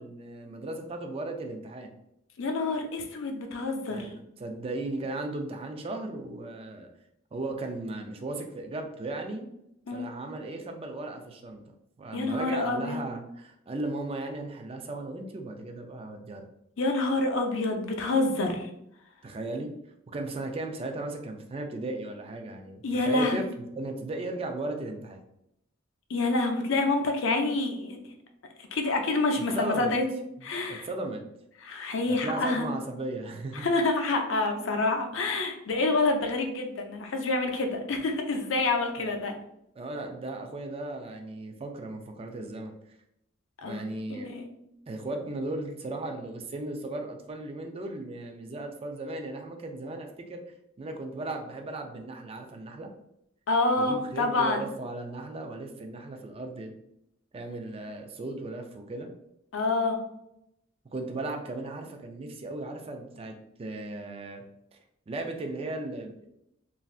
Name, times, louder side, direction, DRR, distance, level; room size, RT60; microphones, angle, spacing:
voice 1, 0.0-1.9 3.9-6.9 7.3-9.5 9.9-11.6 12.0-16.5 19.2-19.7 20.1-23.4 23.8-25.2 29.5-29.9 30.7-31.2 32.1-33.7 39.0-39.2 39.8-42.7 43.6-44.4 44.9-50.4 50.8-52.9 53.8-56.7 57.3-59.1 60.9-64.4 64.7-64.8 65.1-66.3, right 2 dB, 30° right, 4 dB, 0.4 m, -36 dB
voice 2, 2.4-4.1 9.9-10.1 12.1-13.0 16.8-18.7 22.8-23.4 26.1-28.0 28.7-30.1 30.4-30.9 31.6-32.7 33.5-39.3 43.6-43.8 44.1-44.5 53.5-54.7 59.5-60.0, left 2 dB, 70° left, 4 dB, 0.5 m, -27 dB
3.2 x 2.6 x 2.4 m, 0.80 s
head